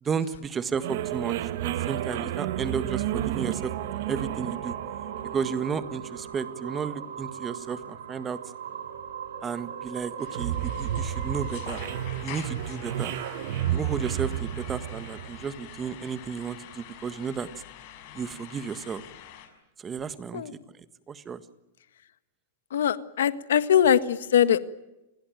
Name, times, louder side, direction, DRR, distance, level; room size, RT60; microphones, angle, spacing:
voice 1, 0.0-3.7 4.1-4.8 5.3-8.4 9.4-11.8 12.2-13.1 13.7-17.5 18.1-19.0 19.8-20.4 21.1-21.4, right 6 dB, 20° right, 12 dB, 1.6 m, -33 dB
sound 1, 0.8-16.2, right 11 dB, 60° right, 1.7 m, -33 dB
sound 2, 2.0-13.6, right 8 dB, 85° right, 5.7 m, -41 dB
sound 3, 10.2-19.5, left 11 dB, 50° left, 6.4 m, -45 dB
voice 2, 22.7-24.6, left 9 dB, 85° left, 13 dB, 1.6 m, -22 dB
28.5 x 21.0 x 9.3 m, 0.96 s
supercardioid pair, 140°, 0 cm